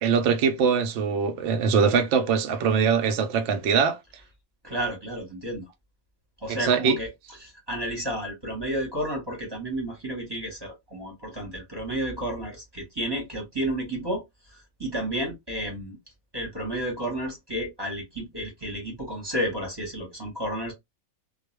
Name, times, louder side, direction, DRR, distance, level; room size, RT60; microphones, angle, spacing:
voice 1, 0.0-4.0 6.6-7.0, right 6 dB, 65° right, 0.7 m, -22 dB
voice 2, 4.6-5.7 6.4-7.1 7.4-16.0 16.3-20.7, right 1 dB, 20° right, 0.9 m, -31 dB
2.4 x 2.2 x 3.0 m
omnidirectional pair, 1.5 m